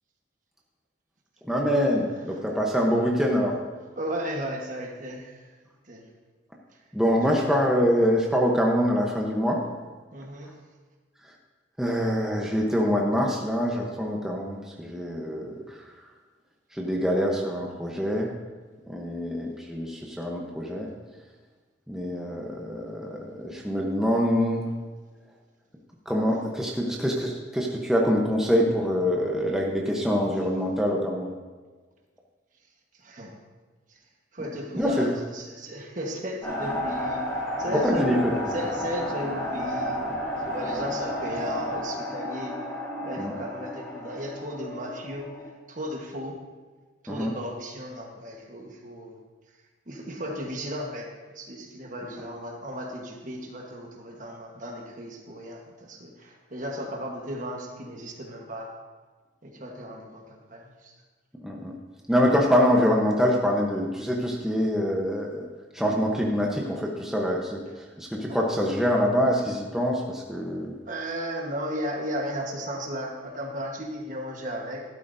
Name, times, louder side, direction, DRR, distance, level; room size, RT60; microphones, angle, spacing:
voice 1, 1.5-3.6 6.9-9.6 11.8-15.5 16.7-18.3 18.9-20.9 21.9-24.6 26.1-31.3 34.8-35.1 37.8-38.2 43.2-43.3 47.1-47.3 61.4-61.7 62.1-65.5 65.7-67.6 68.0-70.7, equal, 5° right, -2 dB, 1.0 m, -25 dB
voice 2, 4.0-5.4 5.9-6.1 7.2-7.4 10.1-10.5 32.9-33.3 33.9-34.0 34.3-37.3 37.6-38.2 38.5-40.1 40.4-42.6 43.0-45.3 45.7-46.4 47.0-49.2 49.9-58.7 59.4-60.9 68.3-68.5 70.9-74.8, equal, 45° right, 1 dB, 1.4 m, -35 dB
sound 1, 36.4-45.5, left 1 dB, 15° left, 2.4 m, -32 dB
12.5 x 12.0 x 2.7 m, 1.4 s
head